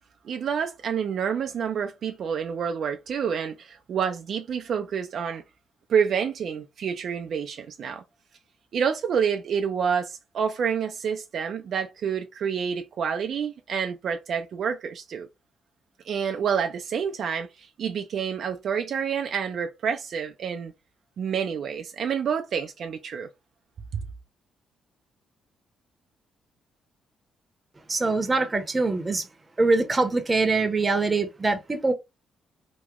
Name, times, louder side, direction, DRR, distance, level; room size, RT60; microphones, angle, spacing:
voice 1, 0.2-5.4 5.9-8.0 8.7-15.3 16.0-20.7 21.2-23.3 23.9-24.0, right 7 dB, 60° right, 0.4 m, -28 dB
voice 2, 27.9-29.3 29.6-31.9, right 3 dB, 25° right, 0.7 m, -23 dB
3.0 x 2.1 x 3.5 m
cardioid pair, 90°, 0 cm